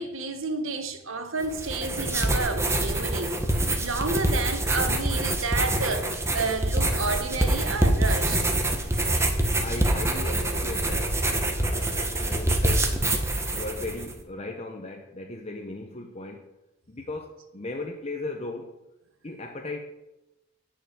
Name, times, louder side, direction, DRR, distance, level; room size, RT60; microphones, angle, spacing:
voice 1, 0.0-3.4 3.8-8.5, right 3 dB, 80° right, 1.5 m, -30 dB
sound 1, 1.4-14.1, right 1 dB, 15° right, 1.3 m, -25 dB
voice 2, 9.6-11.2 11.5-12.9 13.5-16.5 16.9-18.7 19.2-19.9, left 2 dB, 30° left, 1.0 m, -37 dB
11.0 x 5.9 x 8.9 m
head